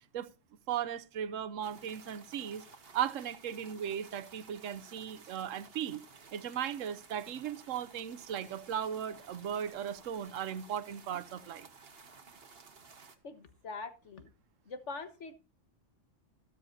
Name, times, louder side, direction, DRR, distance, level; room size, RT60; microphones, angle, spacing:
voice 1, 0.7-2.6 2.9-6.0 6.3-11.7, right 9 dB, 80° right, 1.1 m, -37 dB
sound 1, 1.6-13.2, right 4 dB, 50° right, 1.5 m, -55 dB
voice 2, 13.2-14.3 14.6-15.3, left 4 dB, 65° left, 1.6 m, -43 dB
13.0 x 12.5 x 2.7 m
omnidirectional pair, 1.3 m